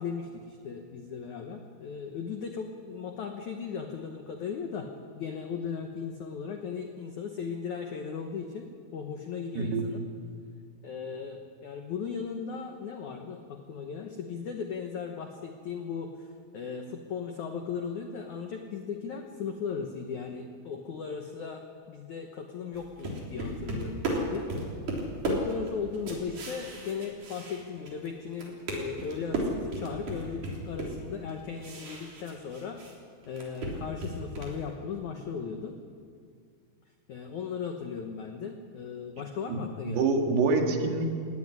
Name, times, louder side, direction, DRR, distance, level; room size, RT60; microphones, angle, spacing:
voice 1, 0.0-4.9 5.1-10.1 10.8-24.5 25.3-32.8 33.3-35.7 37.1-40.0, left 6 dB, 90° left, 4 dB, 1.7 m, -37 dB
voice 2, 9.6-9.9 39.5-41.2, right 3 dB, 65° right, 3 dB, 3.7 m, -26 dB
sound 1, 22.7-28.1 28.3-32.9 33.2-34.6, right 2 dB, 45° right, 4.7 m, -35 dB
18.5 x 17.5 x 9.8 m, 2.2 s
omnidirectional pair, 5.3 m